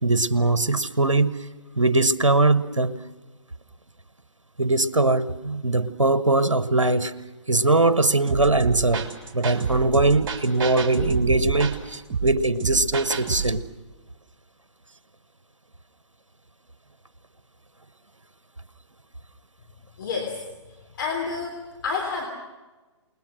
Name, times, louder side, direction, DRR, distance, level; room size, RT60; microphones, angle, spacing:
voice 1, 0.0-1.4 1.8-3.0 4.6-7.1 7.5-9.1 9.3-13.6, right 2 dB, 85° right, 14 dB, 1.2 m, -21 dB
sound 1, 8.3-13.6, right 6 dB, 45° right, 3.6 m, -28 dB
voice 2, 20.0-20.4 21.0-22.3, left 5 dB, 45° left, 1 dB, 3.7 m, -29 dB
28.5 x 21.0 x 6.4 m, 1.2 s
figure-of-eight pair, 130°, 16 cm